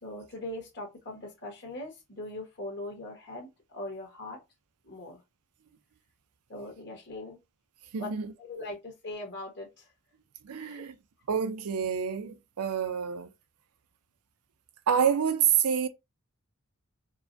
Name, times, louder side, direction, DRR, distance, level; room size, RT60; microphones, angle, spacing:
voice 1, 0.0-4.4 4.8-5.2 6.5-7.4 8.0-8.1 8.4-9.8 10.6-10.9, left 1 dB, 50° left, 1.3 m, -40 dB
voice 2, 7.9-8.3 10.4-11.0 11.3-13.3 14.9-15.9, right 7 dB, 80° right, 0.5 m, -27 dB
4.6 x 2.2 x 2.6 m
head